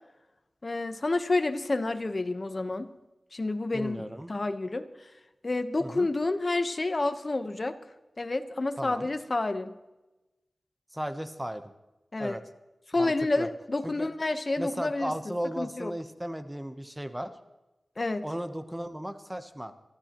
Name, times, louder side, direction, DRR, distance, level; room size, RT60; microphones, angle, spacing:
voice 1, 0.6-2.9 3.3-4.8 5.4-7.8 8.2-9.7 12.1-12.4 12.9-15.1 15.6-15.9 18.0-18.2, left 2 dB, 40° left, 9 dB, 1.1 m, -29 dB
voice 2, 3.7-4.3 5.8-6.1 8.8-9.1 10.9-11.6 12.2-12.4 13.0-13.5 13.8-14.1 14.6-17.3 18.2-19.7, equal, 10° right, 9 dB, 0.9 m, -35 dB
23.5 x 14.5 x 3.0 m, 1.0 s
wide cardioid pair, 80°, 0 cm